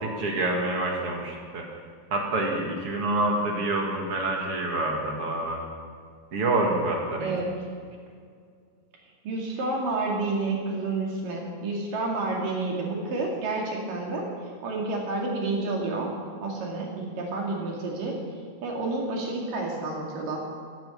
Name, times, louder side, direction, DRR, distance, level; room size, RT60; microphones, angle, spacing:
voice 1, 0.0-1.6 2.1-5.6 6.3-7.3, right 2 dB, 45° right, 0 dB, 2.2 m, -27 dB
voice 2, 7.2-7.6 9.2-14.3 14.6-16.1 16.4-18.2 18.6-20.4, right 3 dB, 65° right, -1 dB, 3.7 m, -29 dB
15.5 x 9.1 x 7.1 m, 2.1 s
omnidirectional pair, 4.4 m